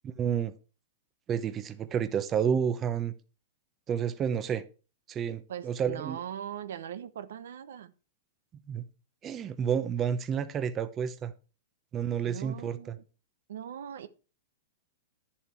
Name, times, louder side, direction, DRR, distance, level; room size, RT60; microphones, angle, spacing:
voice 1, 0.2-0.5 1.3-3.1 3.9-4.6 5.1-6.2 8.7-8.8 9.2-11.3 11.9-12.8, right 8 dB, 25° right, 0.8 m, -30 dB
voice 2, 5.5-7.9 12.2-13.0 13.5-14.1, right 9 dB, 75° right, 0.9 m, -40 dB
10.5 x 7.2 x 4.5 m
hypercardioid pair, 135°, 0 cm